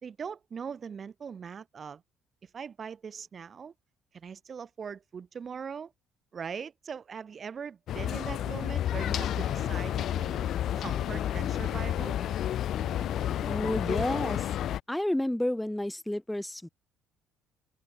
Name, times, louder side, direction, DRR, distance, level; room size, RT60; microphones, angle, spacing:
voice 1, 0.0-2.0 2.4-3.7 4.1-5.9 6.3-10.4 10.8-12.2, right 6 dB, 40° right, 2.8 m, -41 dB
sound 1, 7.9-14.8, left 11 dB, 60° left, 1.2 m, -30 dB
sound 2, 8.3-8.8 9.1-10.6 10.9-12.5 12.8-13.6, right 15 dB, 75° right, 7.0 m, -50 dB
voice 2, 13.4-14.5 14.9-16.7, left 1 dB, 5° left, 0.9 m, -30 dB
open air
cardioid pair, 95°, 0 cm